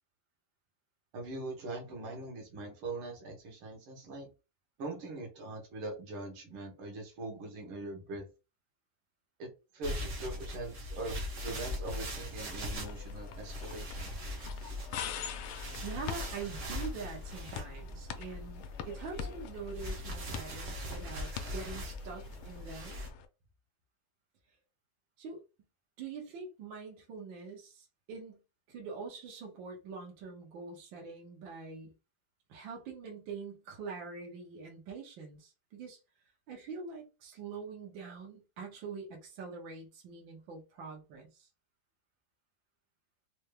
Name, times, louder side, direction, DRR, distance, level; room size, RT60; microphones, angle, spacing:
voice 1, 1.1-4.3 4.8-8.3 9.4-11.2 11.4-14.1, right 2 dB, 85° right, 2.1 m, -42 dB
sound 1, 9.8-23.1, left 1 dB, 45° right, 1.0 m, -41 dB
sound 2, 12.8-23.3, left 8 dB, 85° left, 1.4 m, -45 dB
voice 2, 15.8-23.0 25.2-25.4 26.0-28.4 28.7-31.9 32.5-36.0 36.5-41.5, right 5 dB, 70° right, 1.7 m, -44 dB
4.4 x 3.3 x 2.2 m
omnidirectional pair, 2.3 m